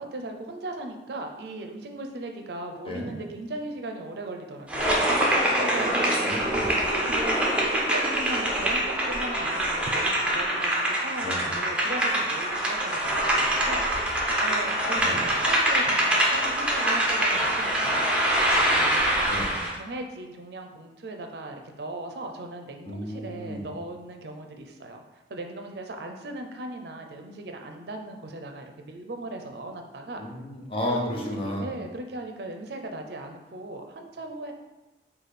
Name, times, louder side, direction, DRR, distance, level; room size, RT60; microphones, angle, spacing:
voice 1, 0.0-6.2 6.6-14.0 14.4-18.1 18.5-19.3 19.7-25.0 25.3-30.2 30.8-34.5, right 2 dB, 65° right, 4 dB, 0.5 m, -38 dB
sound 1, 4.7-19.7, right 1 dB, 5° right, 0.6 m, -24 dB
voice 2, 6.2-6.7 11.2-11.5 14.9-15.2 19.2-19.6 22.9-23.6 30.2-31.7, left 1 dB, 30° left, -1 dB, 0.7 m, -33 dB
4.9 x 2.3 x 4.1 m, 1.1 s
head